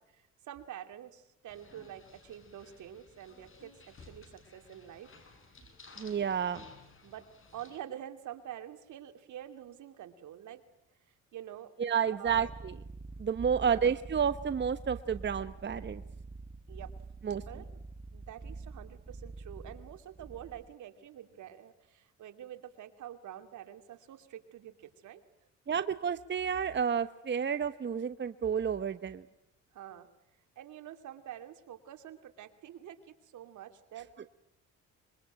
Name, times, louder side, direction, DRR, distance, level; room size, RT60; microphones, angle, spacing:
voice 1, 0.1-5.1 7.0-7.2 7.5-10.6 11.3-11.7 12.1-12.5 13.6-13.8 16.7-16.9 17.5-17.9 18.1-25.2 29.7-30.1 30.6-34.1, right 11 dB, 75° right, 8 dB, 2.7 m, -47 dB
sound 1, 1.5-7.8, left 3 dB, 45° left, 7.3 m, -56 dB
voice 2, 6.0-6.6 11.8-12.8 13.2-16.0 17.2-17.4 25.7-29.2, right 7 dB, 40° right, 12 dB, 1.1 m, -30 dB
sound 2, 12.3-20.7, right 3 dB, 20° right, 1.4 m, -46 dB
25.0 x 23.5 x 9.1 m, 0.85 s
cardioid pair, 90°, 30 cm